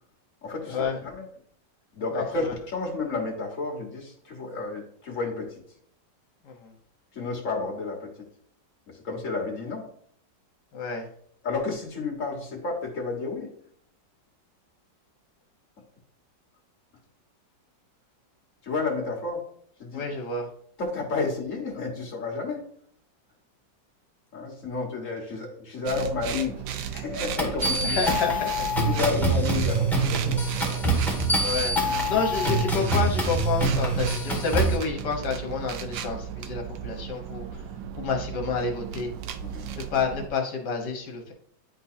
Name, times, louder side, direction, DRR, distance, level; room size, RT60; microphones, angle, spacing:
voice 1, 0.4-1.3 1.9-5.6 7.1-8.1 8.9-9.9 11.4-13.5 18.6-19.4 19.8-20.1 20.8-22.6 24.3-28.0 28.8-31.3 31.9-32.2 39.4-39.7, left 3 dB, 45° left, -1 dB, 1.8 m, -31 dB
voice 2, 2.1-2.5 6.4-6.7 10.7-11.1 19.9-20.5 27.8-28.8 31.4-31.7 32.1-37.6 38.0-39.1 39.7-41.3, left 5 dB, 70° left, 2 dB, 1.8 m, -29 dB
sound 1, 25.9-40.3, right 9 dB, 85° right, 1.3 m, -34 dB
sound 2, 27.4-34.8, right 1 dB, ahead, 1.7 m, -25 dB
10.5 x 3.9 x 2.7 m, 0.63 s
omnidirectional pair, 2.0 m